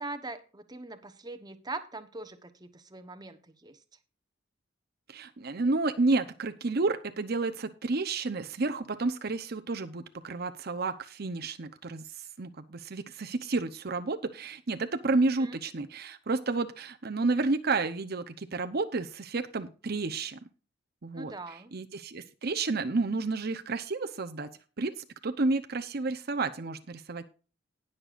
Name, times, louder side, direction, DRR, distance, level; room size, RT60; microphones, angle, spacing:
voice 1, 0.0-3.8 15.4-15.6 21.1-21.7, right 3 dB, 20° right, 9 dB, 1.0 m, -42 dB
voice 2, 5.1-20.4 21.0-24.5 24.8-27.3, right 3 dB, 50° right, 7 dB, 0.7 m, -31 dB
19.0 x 6.7 x 2.5 m, 0.37 s
head